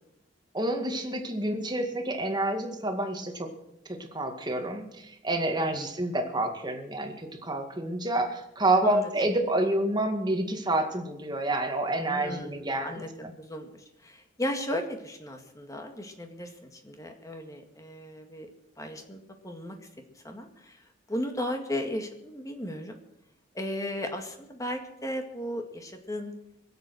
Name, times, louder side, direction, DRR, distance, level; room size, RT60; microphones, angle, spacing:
voice 1, 0.5-3.5 3.9-13.3, right 1 dB, 20° right, 5 dB, 2.0 m, -28 dB
voice 2, 8.8-9.1 12.1-18.5 18.8-19.8 20.2-20.8 21.1-23.0 23.5-26.3, left 1 dB, 15° left, 4 dB, 1.9 m, -35 dB
23.0 x 8.1 x 6.3 m, 0.82 s
head